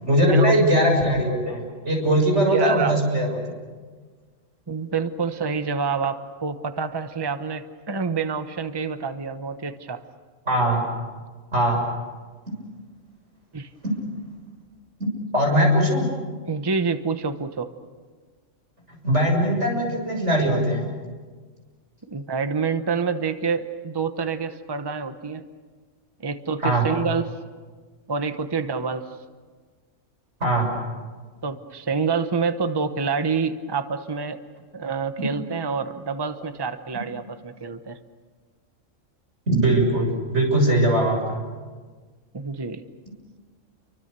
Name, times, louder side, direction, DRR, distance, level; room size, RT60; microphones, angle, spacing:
voice 1, 0.0-3.4 10.5-10.8 11.5-11.8 13.8-13.9 15.0-15.1 15.3-16.1 19.0-20.9 26.6-26.8 30.4-30.7 39.5-41.4, right 1 dB, 65° right, 0 dB, 7.2 m, -20 dB
voice 2, 2.5-2.9 4.7-10.0 13.5-13.7 16.4-17.7 22.1-25.4 26.2-27.3 28.1-29.1 31.4-34.4 34.7-38.0 42.3-42.8, right 5 dB, 20° right, 9 dB, 1.0 m, -27 dB
30.0 x 24.5 x 6.9 m, 1.5 s
omnidirectional pair, 1.3 m